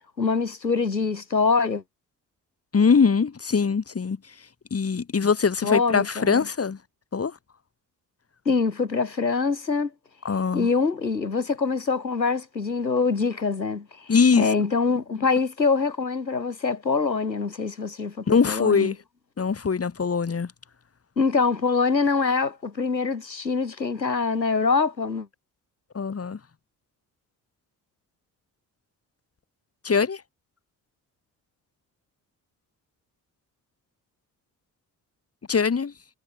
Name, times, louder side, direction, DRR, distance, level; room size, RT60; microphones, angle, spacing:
voice 1, 0.2-1.8 5.6-6.5 8.5-9.9 10.5-18.9 21.2-25.3, left 4 dB, 90° left, 2.2 m, -24 dB
voice 2, 2.7-4.2 4.7-6.8 7.1-7.4 10.2-10.7 14.1-14.5 18.3-18.9 19.4-20.5 25.9-26.4 29.8-30.2 35.5-35.9, left 5 dB, 30° left, 3.0 m, -22 dB
figure-of-eight pair, 45°, 50 cm